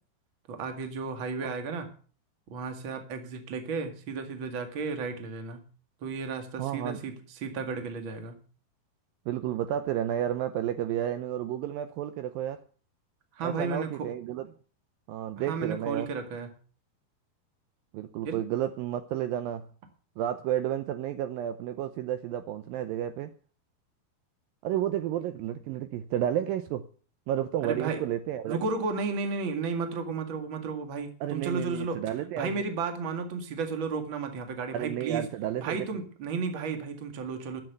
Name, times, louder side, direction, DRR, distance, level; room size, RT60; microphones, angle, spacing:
voice 1, 0.5-1.9 2.5-5.6 6.0-8.4 13.3-14.1 15.4-16.5 18.2-18.4 27.6-28.0 28.4-32.0 32.4-35.3 35.6-37.6, right 4 dB, 40° right, 2.1 m, -33 dB
voice 2, 6.6-7.0 9.3-12.6 13.4-14.5 15.1-16.1 17.9-19.6 20.2-23.3 24.6-26.8 27.3-28.6 31.2-32.5 34.7-36.0, right 11 dB, 75° right, 2.3 m, -31 dB
14.0 x 7.5 x 7.9 m
omnidirectional pair, 4.5 m